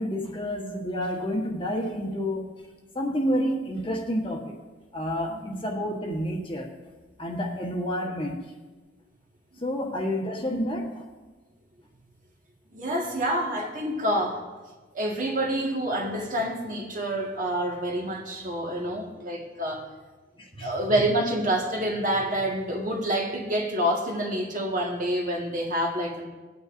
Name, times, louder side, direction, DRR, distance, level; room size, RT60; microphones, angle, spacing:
voice 1, 0.0-2.5 2.9-4.5 4.9-6.7 7.2-8.4 9.6-11.0 20.4-20.7, equal, 25° left, 1.2 m, -29 dB
voice 2, 5.3-5.6 9.8-9.9 12.7-14.4 14.9-19.8 20.5-26.3, right 1 dB, 40° right, 1.6 m, -27 dB
19.0 x 9.3 x 2.6 m
head